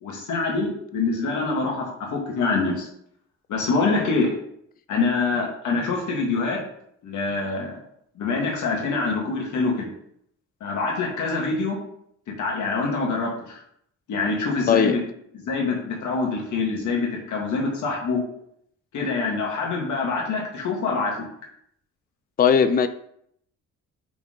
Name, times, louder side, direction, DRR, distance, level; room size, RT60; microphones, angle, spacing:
voice 1, 0.0-2.9 3.5-4.3 4.9-6.6 7.0-7.7 8.2-9.9 10.6-11.8 12.3-13.6 14.1-15.0 15.3-18.2 18.9-21.3, left 3 dB, 75° left, -1 dB, 2.0 m, -25 dB
voice 2, 22.4-22.9, left 7 dB, 30° left, 10 dB, 0.5 m, -18 dB
5.8 x 4.4 x 3.8 m, 0.69 s
cardioid pair, 90°, 30 cm